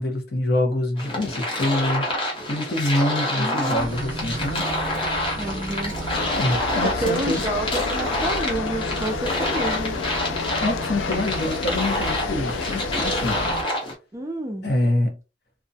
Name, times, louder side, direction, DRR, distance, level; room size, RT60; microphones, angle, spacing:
voice 1, 0.0-2.0 2.5-4.8 6.4-7.4 10.4-13.4 14.6-15.2, left 1 dB, 60° left, 0.8 m, -25 dB
sound 1, 1.0-13.9, left 1 dB, 30° left, 0.8 m, -28 dB
voice 2, 3.3-3.9 5.4-6.0 6.8-10.0 14.1-14.7, right 1 dB, 15° right, 0.4 m, -29 dB
sound 2, 3.7-13.6, right 2 dB, 80° right, 0.5 m, -34 dB
sound 3, 6.1-13.5, left 5 dB, 90° left, 0.3 m, -30 dB
2.4 x 2.1 x 2.6 m
head